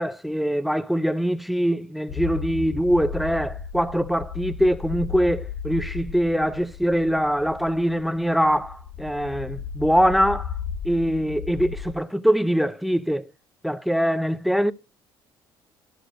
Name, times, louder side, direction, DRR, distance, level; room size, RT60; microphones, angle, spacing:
voice 1, 0.0-10.5 10.8-13.3 13.6-14.7, equal, ahead, 0.4 m, -23 dB
sound 1, 2.1-11.9, left 7 dB, 80° left, 1.0 m, -35 dB
12.5 x 11.5 x 2.5 m
cardioid pair, 150°, 10 cm